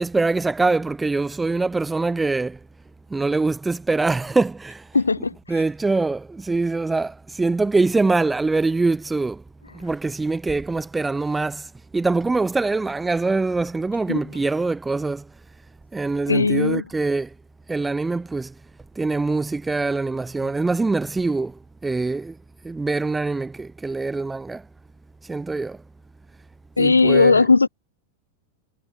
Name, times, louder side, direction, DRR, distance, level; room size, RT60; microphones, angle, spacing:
voice 1, 0.0-2.6 3.1-4.8 5.5-9.4 9.7-15.3 15.9-17.3 17.7-18.5 19.0-22.4 22.6-24.6 25.3-25.8 26.8-27.4, right 3 dB, 10° right, 4.8 m, -24 dB
voice 2, 4.9-5.6 14.1-14.2 16.3-16.8 26.8-27.7, left 4 dB, 80° left, 2.6 m, -18 dB
figure-of-eight pair, 90°, 0 cm